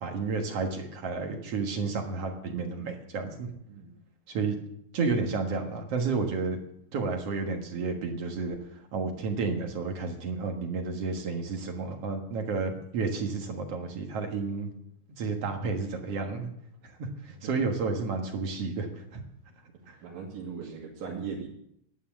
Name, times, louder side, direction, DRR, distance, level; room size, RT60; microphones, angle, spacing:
voice 1, 0.0-3.5 4.3-4.6 4.9-6.6 6.9-8.6 8.9-14.7 15.2-16.5 16.8-19.2 19.9-20.0, right 4 dB, 55° right, 3 dB, 2.1 m, -31 dB
voice 2, 20.0-21.5, right 5 dB, 85° right, -4 dB, 3.6 m, -38 dB
11.5 x 9.7 x 7.3 m, 0.75 s
omnidirectional pair, 3.9 m